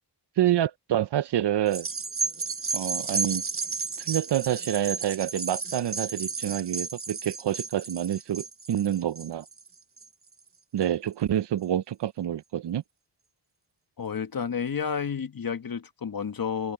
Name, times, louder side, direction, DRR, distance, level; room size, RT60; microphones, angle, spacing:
voice 1, 0.4-1.9 2.7-3.4 4.0-9.4 10.7-12.8, right 11 dB, 75° right, 0.6 m, -27 dB
sound 1, 1.7-10.3 10.8-10.9, right 4 dB, 30° right, 1.0 m, -33 dB
voice 2, 14.0-16.7, left 7 dB, 55° left, 1.4 m, -31 dB
wide cardioid pair, 90°, 41 cm